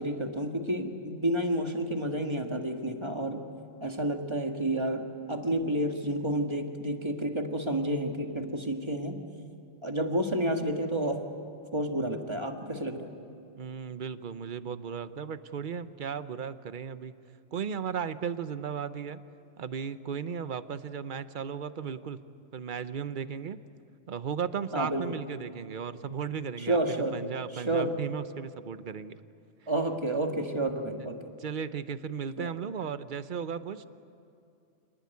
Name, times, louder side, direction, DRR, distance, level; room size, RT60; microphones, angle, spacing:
voice 1, 0.0-3.5 3.8-9.2 9.8-11.2 11.7-13.2 24.7-25.1 26.7-27.2 27.5-27.9 29.7-31.2 32.4-32.5, right 1 dB, 20° right, 4 dB, 1.7 m, -30 dB
voice 2, 13.5-17.1 17.5-19.2 19.6-22.2 22.5-23.6 24.1-29.1 29.6-29.7 31.0-33.8, right 7 dB, 45° right, 13 dB, 0.8 m, -36 dB
27.0 x 19.5 x 9.5 m, 2.5 s
omnidirectional pair, 1.4 m